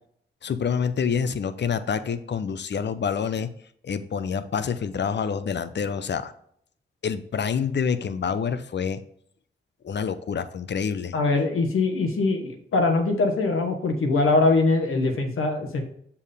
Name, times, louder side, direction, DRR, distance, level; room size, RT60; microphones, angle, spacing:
voice 1, 0.4-3.5 3.8-6.3 7.0-9.0 9.8-11.1, left 6 dB, 55° left, 12 dB, 0.6 m, -27 dB
voice 2, 11.1-15.8, left 3 dB, 80° left, 4 dB, 1.2 m, -22 dB
7.0 x 4.6 x 3.4 m, 0.66 s
cardioid pair, 55°, 21 cm